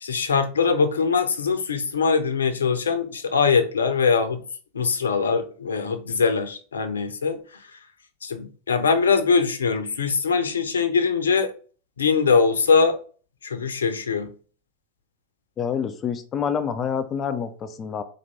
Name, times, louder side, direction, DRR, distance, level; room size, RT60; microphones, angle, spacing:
voice 1, 0.0-4.4 4.7-7.4 8.2-11.5 12.0-13.0 13.4-14.3, left 5 dB, 70° left, 0.6 m, -22 dB
voice 2, 15.6-18.0, left 7 dB, 25° left, 0.4 m, -27 dB
4.4 x 2.6 x 4.0 m
figure-of-eight pair, 90°, 0 cm